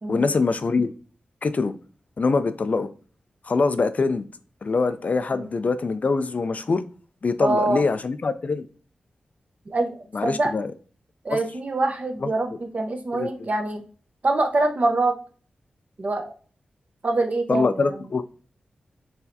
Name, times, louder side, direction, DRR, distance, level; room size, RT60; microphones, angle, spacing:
voice 1, 0.1-0.9 1.4-1.7 2.2-2.9 3.5-4.2 4.6-6.8 7.2-8.6 10.1-10.7 13.1-13.3 17.5-18.2, left 4 dB, 55° left, 0.4 m, -23 dB
voice 2, 7.4-7.9 9.7-9.9 10.2-10.5 11.2-13.8 14.2-15.1 16.0-16.3 17.0-17.9, right 2 dB, 50° right, 0.8 m, -24 dB
4.6 x 3.3 x 2.7 m
cardioid pair, 50°, 3 cm